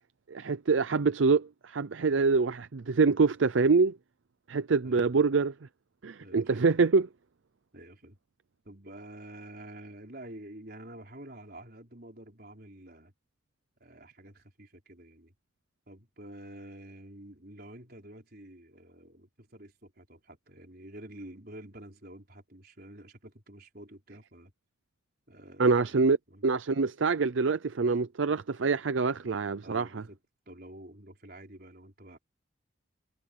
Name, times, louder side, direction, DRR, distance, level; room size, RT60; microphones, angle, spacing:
voice 1, 0.3-4.0 4.5-5.5 6.0-7.1 25.6-26.2 26.4-30.0, right 4 dB, 70° right, 0.5 m, -25 dB
voice 2, 4.8-5.2 6.2-6.6 7.7-8.2 8.6-13.1 13.8-15.3 15.9-24.5 25.3-26.4 29.6-30.2 30.5-32.2, right 1 dB, 50° right, 4.8 m, -48 dB
head